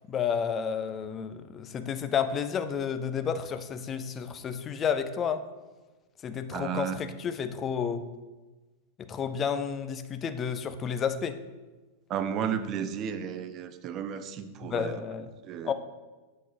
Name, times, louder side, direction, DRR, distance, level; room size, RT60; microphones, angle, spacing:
voice 1, 0.1-5.4 6.2-8.1 9.0-11.4 14.6-15.3 15.6-15.7, left 7 dB, 25° left, 10 dB, 0.4 m, -31 dB
voice 2, 6.5-7.0 12.1-15.0 15.5-15.7, right 8 dB, 35° right, 11 dB, 0.4 m, -33 dB
8.0 x 4.5 x 2.9 m, 1.2 s
figure-of-eight pair, 90°, 0 cm